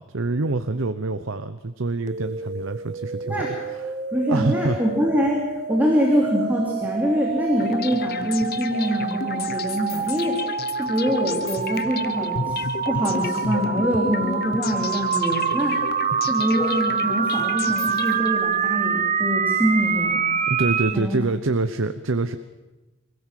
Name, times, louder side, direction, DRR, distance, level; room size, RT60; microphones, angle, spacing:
voice 1, 0.0-4.0 4.3-4.8 20.5-22.4, right 3 dB, 80° right, 10 dB, 0.9 m, -26 dB
sound 1, 2.1-21.0, right 6 dB, 35° right, 0.8 m, -26 dB
voice 2, 4.1-10.4 10.8-12.6 12.9-15.8 16.2-20.2 20.9-21.2, equal, 10° right, -2 dB, 3.2 m, -24 dB
sound 2, 7.6-18.7, left 5 dB, 50° left, 0.9 m, -33 dB
25.5 x 16.5 x 7.6 m, 1.1 s
head